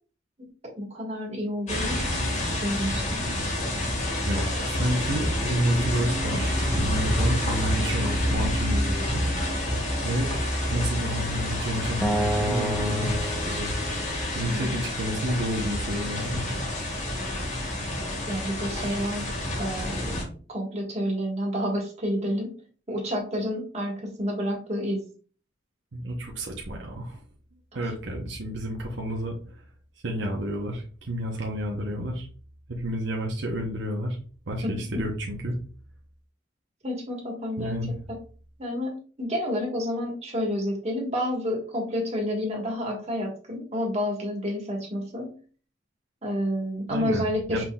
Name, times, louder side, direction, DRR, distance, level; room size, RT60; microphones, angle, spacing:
voice 1, 0.8-2.0 2.6-3.2 14.5-14.8 18.3-19.3 19.6-20.2 20.5-22.5 22.9-25.0 34.6-35.0 36.8-37.8 38.6-45.3 46.2-47.7, equal, 35° right, 0 dB, 1.4 m, -29 dB
sound 1, 1.7-20.2, left 1 dB, 40° left, 1.7 m, -28 dB
voice 2, 4.3-9.3 10.0-10.3 10.6-13.7 14.3-16.4 25.9-27.2 27.7-29.4 30.0-32.3 32.7-34.2 34.5-35.5 37.6-38.0 46.9-47.7, right 1 dB, 75° right, 0 dB, 0.8 m, -30 dB
Acoustic guitar, 12.0-15.3, right 1 dB, 5° left, 0.4 m, -31 dB
5.8 x 3.7 x 2.3 m, 0.40 s
head